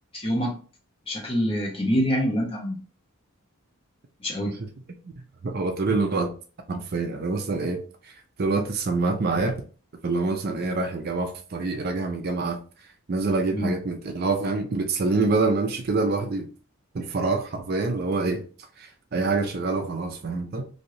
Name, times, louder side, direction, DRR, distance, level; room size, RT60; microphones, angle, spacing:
voice 1, 0.1-0.6 1.1-2.8 4.2-4.6 13.5-13.7, equal, 25° left, 0.9 m, -25 dB
voice 2, 5.2-6.3 6.7-7.8 8.4-9.6 10.0-12.6 13.1-16.5 16.9-18.4 19.1-20.7, right 3 dB, 45° right, 0.4 m, -26 dB
3.1 x 2.7 x 2.6 m
head